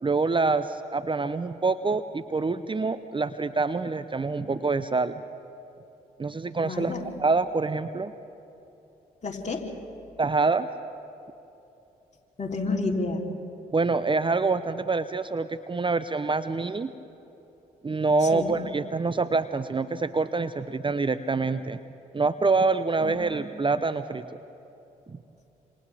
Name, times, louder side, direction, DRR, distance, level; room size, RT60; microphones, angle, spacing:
voice 1, 0.0-5.2 6.2-6.9 7.2-8.1 10.2-10.7 13.7-16.9 17.8-21.8 22.1-24.3 25.1-25.2, right 3 dB, 25° right, 12 dB, 0.7 m, -26 dB
voice 2, 6.6-7.0 9.2-9.7 12.4-13.2 18.2-18.6 23.0-23.4, left 3 dB, 35° left, 0 dB, 3.4 m, -30 dB
27.0 x 27.0 x 3.5 m, 2.9 s
hypercardioid pair, 40°, 19 cm